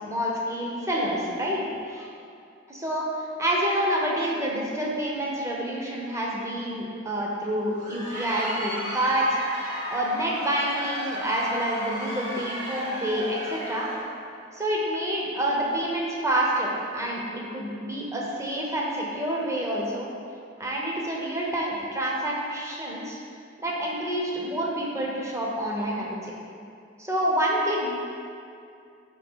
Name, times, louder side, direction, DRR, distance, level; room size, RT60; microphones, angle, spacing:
voice 1, 0.0-2.1 2.7-9.3 9.8-13.9 14.5-20.1 20.6-23.2 23.6-26.3 27.0-27.9, right 1 dB, 15° right, -3 dB, 0.9 m, -28 dB
Crowd, 7.6-14.2, equal, 40° right, 1.2 m, -34 dB
5.3 x 3.8 x 5.5 m, 2.4 s
head